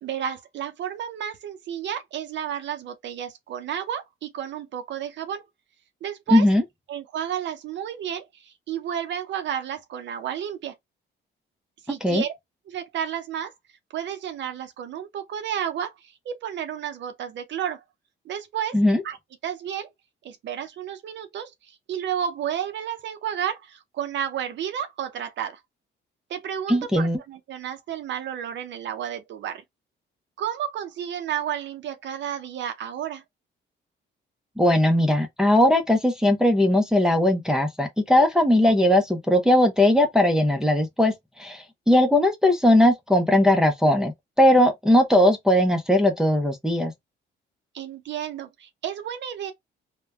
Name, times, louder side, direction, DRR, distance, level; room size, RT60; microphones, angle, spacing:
voice 1, 0.0-5.4 6.0-6.5 6.9-10.8 11.8-12.3 12.7-13.5 13.9-17.8 18.3-18.8 19.0-19.2 19.4-19.9 20.2-25.6 26.3-29.6 30.4-33.2 47.7-49.5, right 9 dB, 65° right, 0.5 m, -31 dB
voice 2, 6.3-6.6 12.0-12.2 18.7-19.0 26.7-27.2 34.6-41.1 41.4-44.1 44.4-46.9, left 1 dB, 5° right, 0.6 m, -19 dB
3.2 x 2.1 x 2.2 m
cardioid pair, 90°, 20 cm